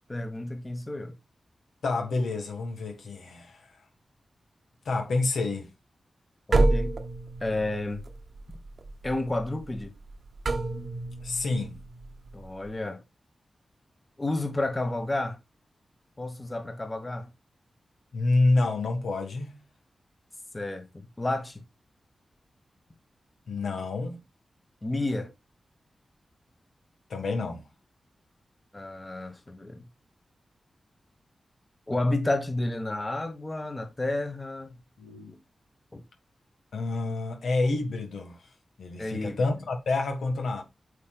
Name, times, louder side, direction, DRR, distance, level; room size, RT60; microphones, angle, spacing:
voice 1, 0.1-1.2 6.5-6.9 7.4-8.0 9.0-9.9 12.3-13.0 14.2-15.4 16.2-17.3 20.5-20.9 21.2-21.6 24.8-25.3 28.7-29.9 31.9-34.8 35.9-36.0 39.0-39.5, left 2 dB, 25° left, 1.4 m, -31 dB
voice 2, 1.8-3.6 4.9-5.7 11.2-11.8 18.1-19.6 23.5-24.2 27.1-27.6 35.0-35.3 36.7-38.4 38.8-40.6, left 3 dB, 90° left, 1.8 m, -28 dB
sound 1, 6.5-12.8, right 2 dB, 60° right, 1.0 m, -29 dB
8.3 x 5.7 x 2.4 m
cardioid pair, 70°, 0 cm